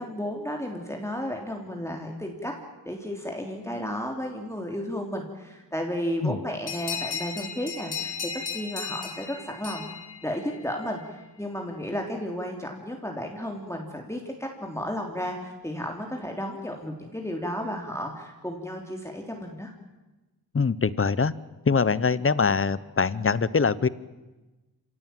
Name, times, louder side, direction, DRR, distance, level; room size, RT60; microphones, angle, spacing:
voice 1, 0.0-2.5 2.9-8.1 8.5-9.9 10.2-11.0 11.4-19.7, equal, 5° left, 1 dB, 3.5 m, -33 dB
sound 1, 6.7-10.9, left 6 dB, 75° left, 3.6 m, -35 dB
voice 2, 20.5-21.3 21.7-23.9, left 5 dB, 35° left, 18 dB, 1.0 m, -23 dB
26.0 x 17.5 x 9.2 m, 1.1 s
cardioid pair, 75°, 39 cm